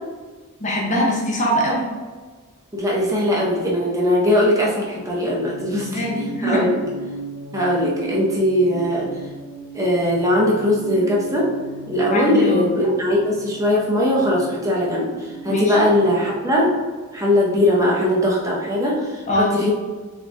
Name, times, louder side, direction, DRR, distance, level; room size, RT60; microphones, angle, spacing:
voice 1, 0.6-1.9 5.7-6.6 12.1-12.7 15.5-15.8 19.3-19.7, equal, 35° left, -3 dB, 0.9 m, -22 dB
voice 2, 2.7-6.7 7.5-9.1 9.7-11.5 11.9-15.1 15.4-16.7 17.1-19.7, left 1 dB, 15° right, -4 dB, 0.8 m, -20 dB
sound 1, 5.3-17.3, right 3 dB, 80° left, 0.6 m, -37 dB
3.7 x 3.5 x 2.6 m, 1.4 s
head